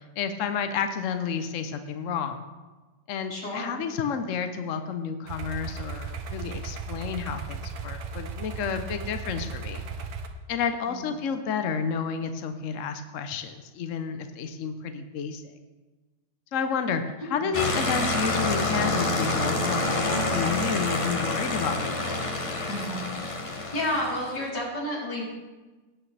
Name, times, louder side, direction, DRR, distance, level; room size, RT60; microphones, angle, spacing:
voice 1, 0.0-2.5 3.1-9.8 10.5-15.5 16.5-22.2, left 6 dB, 60° left, 8 dB, 1.0 m, -31 dB
voice 2, 3.3-3.8 10.9-11.1 17.4-17.5 22.7-23.0 23.7-25.2, left 1 dB, 80° left, -6 dB, 4.3 m, -31 dB
sound 1, 5.3-10.3, right 5 dB, 65° right, 1.4 m, -36 dB
sound 2, 17.5-24.4, left 2 dB, 25° left, 0.8 m, -27 dB
18.0 x 8.6 x 3.3 m, 1.2 s
omnidirectional pair, 1.8 m